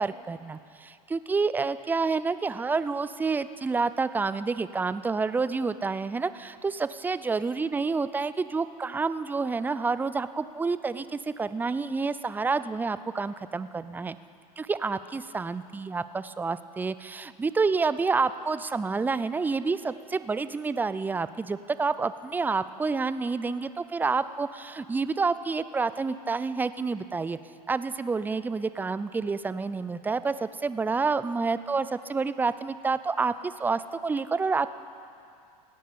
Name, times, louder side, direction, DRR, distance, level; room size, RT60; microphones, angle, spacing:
voice 1, 0.0-14.2 14.6-27.4 27.7-34.7, right 4 dB, 10° right, 14 dB, 0.4 m, -28 dB
17.0 x 9.9 x 6.9 m, 2.5 s
hypercardioid pair, 100°, 20 cm